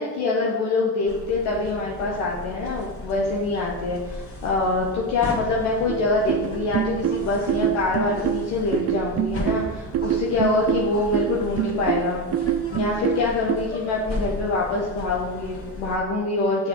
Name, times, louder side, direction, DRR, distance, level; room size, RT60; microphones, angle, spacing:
voice 1, 0.0-12.2 12.7-16.7, left 3 dB, 70° left, -3 dB, 1.5 m, -25 dB
sound 1, 1.1-16.0, left 1 dB, 35° left, 2.6 m, -36 dB
sound 2, 5.9-13.6, right 11 dB, 40° right, 0.5 m, -25 dB
7.0 x 6.7 x 5.6 m, 1.3 s
hypercardioid pair, 55°, 39 cm